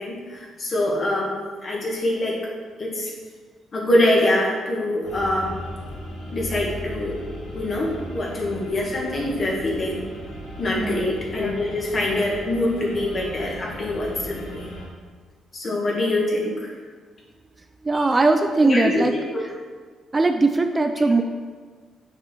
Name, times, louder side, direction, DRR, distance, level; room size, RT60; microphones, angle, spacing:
voice 1, 0.0-2.3 2.8-3.1 3.7-5.6 6.3-7.2 7.5-10.1 10.6-14.7 15.5-16.7 17.9-18.0 18.6-19.4, left 1 dB, 45° left, -3 dB, 1.8 m, -24 dB
sound 1, 5.0-14.9, equal, 70° left, 1.5 m, -37 dB
voice 2, 10.7-11.2 17.8-19.1 20.1-21.2, right 3 dB, 25° right, 6 dB, 0.4 m, -20 dB
6.6 x 4.3 x 4.6 m, 1.5 s
cardioid pair, 90°, 0 cm